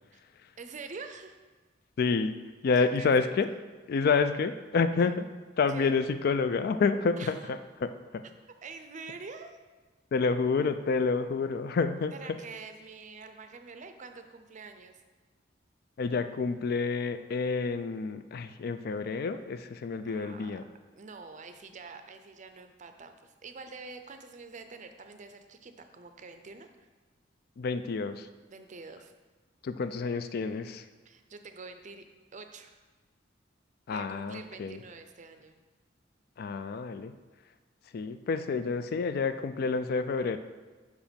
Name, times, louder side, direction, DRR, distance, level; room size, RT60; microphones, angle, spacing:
voice 1, 0.6-1.4 2.7-3.4 5.0-5.1 5.7-5.9 7.2-7.5 8.6-9.6 12.1-15.0 20.0-20.5 20.9-26.9 28.5-29.1 31.1-32.1 32.3-32.8 33.9-35.6, right 4 dB, 40° right, 7 dB, 0.5 m, -46 dB
voice 2, 2.0-3.5 3.9-5.3 5.6-8.2 10.1-12.4 16.0-20.6 27.6-28.3 29.6-30.9 33.9-34.8 36.4-37.1 37.9-40.4, left 4 dB, 55° left, 10 dB, 0.3 m, -29 dB
5.5 x 5.0 x 5.2 m, 1.3 s
head